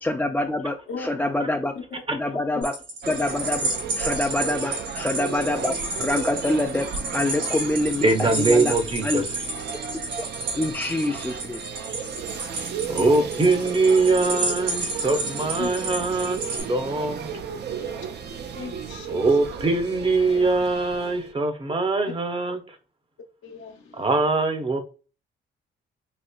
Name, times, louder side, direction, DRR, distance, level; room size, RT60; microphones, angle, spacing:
voice 1, 0.0-1.7 2.1-2.7 3.1-3.6 4.0-8.8 9.0-9.2 10.6-11.6, left 1 dB, 10° left, 0.3 m, -26 dB
sound 1, 2.6-16.6, right 2 dB, 85° right, 1.9 m, -31 dB
sound 2, 3.0-21.3, right 7 dB, 55° right, 0.6 m, -35 dB
voice 2, 8.0-9.4 12.9-17.3 19.1-22.6 24.0-24.8, right 3 dB, 25° right, 0.8 m, -22 dB
voice 3, 18.5-19.3 23.4-24.0, left 5 dB, 80° left, 0.9 m, -36 dB
4.2 x 2.9 x 2.3 m
cardioid pair, 90°, 20 cm